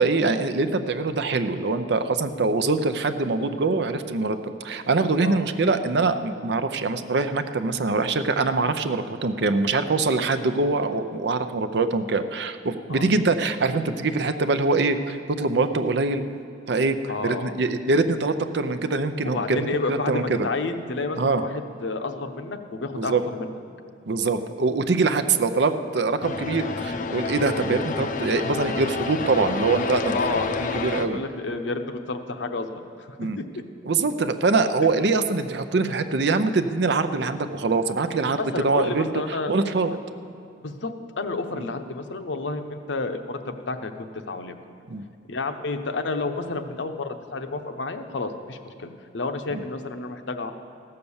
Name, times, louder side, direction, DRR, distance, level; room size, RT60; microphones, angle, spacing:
voice 1, 0.0-16.2 16.7-20.5 21.2-21.4 23.0-23.2 24.1-30.2 30.6-31.2 33.2-33.4 33.8-40.0 41.6-41.7 44.9-45.0 49.5-49.6, right 3 dB, 65° right, 9 dB, 0.6 m, -24 dB
voice 2, 17.1-17.5 19.2-23.5 30.1-30.6 31.1-33.1 33.4-33.6 34.8-34.9 38.4-39.7 40.6-44.5 45.3-50.5, left 3 dB, 80° left, 7 dB, 0.8 m, -30 dB
sound 1, 26.2-31.1, left 4 dB, 45° left, 0.6 m, -29 dB
15.5 x 6.7 x 7.1 m, 2.5 s
head